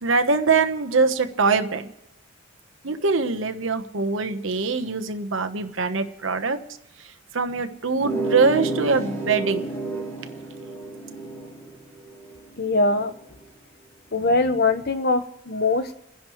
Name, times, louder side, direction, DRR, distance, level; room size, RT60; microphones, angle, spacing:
voice 1, 0.0-1.9 2.8-6.6 7.3-9.6, right 4 dB, 70° right, 7 dB, 1.1 m, -23 dB
sound 1, 7.9-13.2, right 2 dB, 10° left, 3.9 m, -31 dB
voice 2, 12.6-13.1 14.1-15.9, left 3 dB, 50° left, 9 dB, 1.0 m, -22 dB
30.0 x 10.5 x 3.1 m, 0.90 s
head